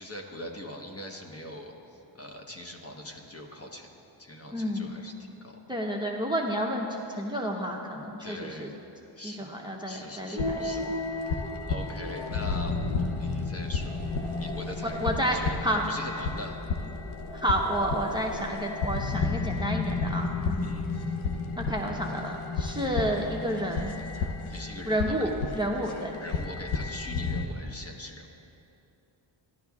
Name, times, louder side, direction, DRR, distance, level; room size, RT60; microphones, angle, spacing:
voice 1, 0.0-3.9 4.2-5.6 8.2-8.8 9.2-9.5 9.9-13.9 14.3-16.9 20.6-20.9 24.5-25.3 26.2-28.3, left 1 dB, 30° left, 2 dB, 1.1 m, -42 dB
voice 2, 4.5-5.0 5.7-8.7 9.2-10.8 15.0-15.8 17.3-20.7 21.6-23.9 24.9-26.2, equal, 10° right, 0 dB, 0.8 m, -30 dB
sound 1, 10.4-27.5, left 3 dB, 75° left, 0.8 m, -32 dB
14.5 x 11.5 x 2.4 m, 2.8 s
cardioid pair, 70°, 49 cm